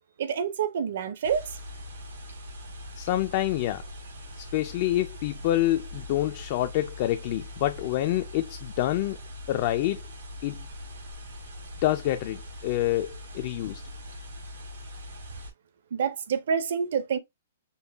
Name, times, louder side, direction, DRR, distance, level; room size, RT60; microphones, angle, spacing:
voice 1, 0.2-1.6 15.9-17.2, right 7 dB, 55° right, 0.7 m, -27 dB
sound 1, 1.2-15.5, left 1 dB, 85° right, 3.2 m, -42 dB
voice 2, 3.0-3.8 4.4-9.2 9.5-10.0 10.4-10.7 11.8-13.8, left 14 dB, 35° left, 0.3 m, -27 dB
5.4 x 2.2 x 3.4 m
hypercardioid pair, 175°, 0 cm